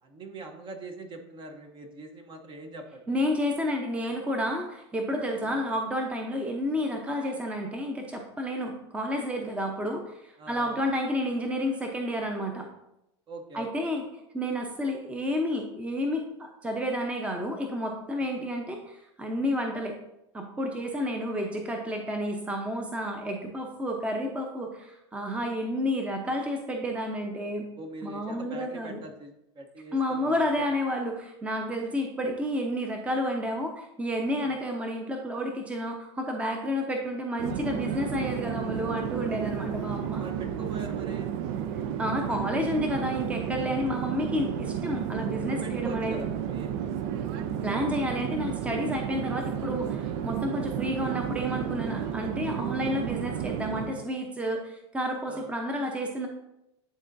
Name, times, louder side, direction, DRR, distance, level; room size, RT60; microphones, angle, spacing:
voice 1, 0.0-3.2 5.4-5.6 10.4-11.0 13.3-13.9 18.3-18.5 27.8-30.7 34.4-34.6 40.2-41.3 45.5-46.7 55.3-55.5, right 2 dB, 30° right, 5 dB, 0.9 m, -43 dB
voice 2, 3.1-12.7 13.5-14.0 14.3-20.0 20.3-27.7 28.0-29.0 29.9-40.2 42.0-46.2 47.6-56.3, equal, 10° right, 2 dB, 0.7 m, -30 dB
Conversation / Chatter / Fixed-wing aircraft airplane, 37.4-54.1, right 9 dB, 60° right, 0.5 m, -32 dB
10.0 x 3.8 x 2.6 m, 0.86 s
hypercardioid pair, 110°, 15 cm